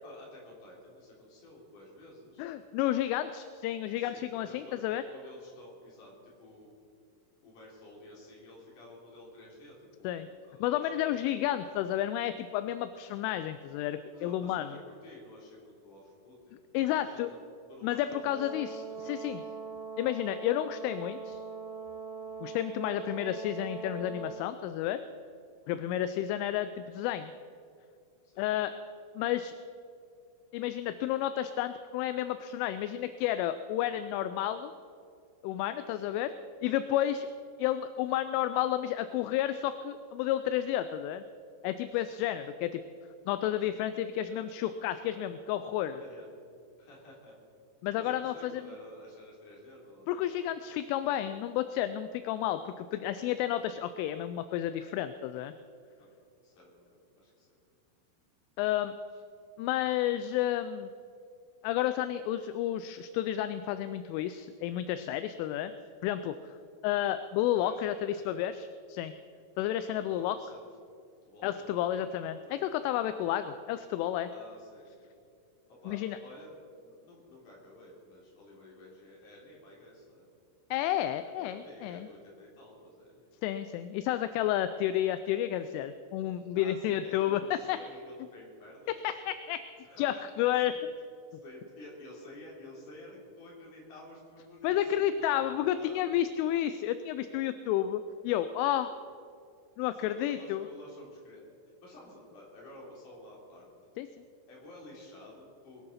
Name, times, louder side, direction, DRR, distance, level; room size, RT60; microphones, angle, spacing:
voice 1, 0.0-2.5 4.0-4.8 5.1-6.7 7.4-11.6 14.1-17.4 17.7-18.5 18.8-19.5 23.1-23.3 25.6-25.9 28.2-28.5 35.9-36.2 36.8-36.9 41.9-42.3 43.4-45.3 46.0-46.3 46.8-47.6 48.0-50.5 56.0-56.1 56.4-57.5 67.5-68.4 70.0-70.7 71.2-73.1 74.3-75.1 75.7-76.5 76.8-80.2 81.2-83.3 86.5-89.2 89.8-90.2 90.6-90.7 91.4-95.0 95.3-96.1 99.8-101.4 101.8-103.7 104.5-105.9, left 1 dB, 45° left, -4 dB, 4.6 m, -52 dB
voice 2, 2.4-5.0 10.0-10.3 10.6-14.7 16.7-17.3 17.8-19.4 20.0-21.4 22.4-25.0 25.7-27.3 28.4-28.7 29.2-29.6 30.5-34.7 35.4-36.3 36.6-37.3 37.6-41.2 41.6-42.8 43.3-46.0 47.8-48.5 50.1-55.5 58.6-58.9 59.6-60.9 61.6-65.7 66.0-66.6 66.8-69.1 69.6-70.4 71.4-74.3 75.9-76.2 80.7-82.1 83.4-87.8 89.0-89.6 90.0-90.7 94.6-98.9 99.8-100.7 104.0-104.1, left 12 dB, 85° left, 11 dB, 3.0 m, -31 dB
Brass instrument, 18.1-24.5, right 5 dB, 75° right, 3.7 m, -42 dB
21.5 x 9.6 x 5.7 m, 2.4 s
omnidirectional pair, 5.7 m